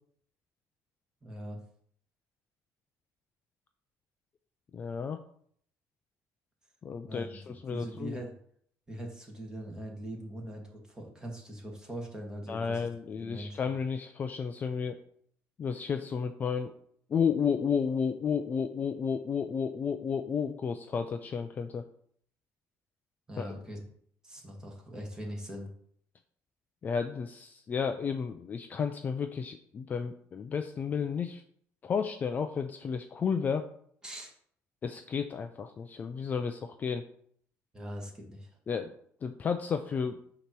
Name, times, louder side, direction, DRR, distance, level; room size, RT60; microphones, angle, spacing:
voice 1, 1.2-1.6 7.0-8.3 8.9-12.8 13.2-13.6 23.3-23.8 24.2-25.7 34.0-34.3 37.7-38.6, right 1 dB, 10° right, 0 dB, 1.6 m, -41 dB
voice 2, 4.7-5.2 6.8-8.2 12.5-15.0 15.6-16.7 17.1-21.8 23.4-23.5 26.8-31.4 31.8-33.6 34.8-37.0 38.7-38.9 39.2-40.2, left 6 dB, 30° left, 7 dB, 0.4 m, -32 dB
8.3 x 2.9 x 6.0 m, 0.64 s
cardioid pair, 155°, 6 cm